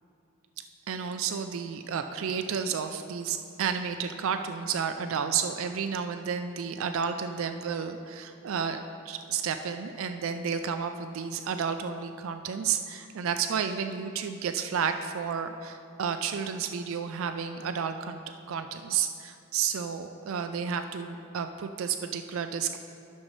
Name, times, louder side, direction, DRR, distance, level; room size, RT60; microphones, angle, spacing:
voice 1, 0.9-18.2 18.5-22.8, right 7 dB, 65° right, 7 dB, 0.4 m, -31 dB
14.0 x 6.3 x 3.1 m, 2.6 s
head